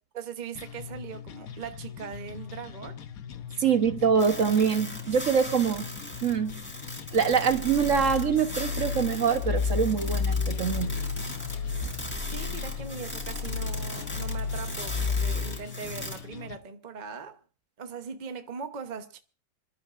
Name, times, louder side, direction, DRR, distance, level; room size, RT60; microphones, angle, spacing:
voice 1, 0.1-3.0 12.3-17.4 17.8-19.2, right 6 dB, 35° right, 0.8 m, -40 dB
sound 1, 0.6-16.6, left 8 dB, 60° left, 1.3 m, -42 dB
voice 2, 3.6-5.9 6.2-6.5 7.1-10.9, right 6 dB, 55° right, 1.2 m, -24 dB
sound 2, 4.2-16.2, equal, 5° left, 3.5 m, -40 dB
sound 3, 7.5-15.6, left 5 dB, 85° left, 3.6 m, -32 dB
27.0 x 12.0 x 2.5 m
omnidirectional pair, 1.8 m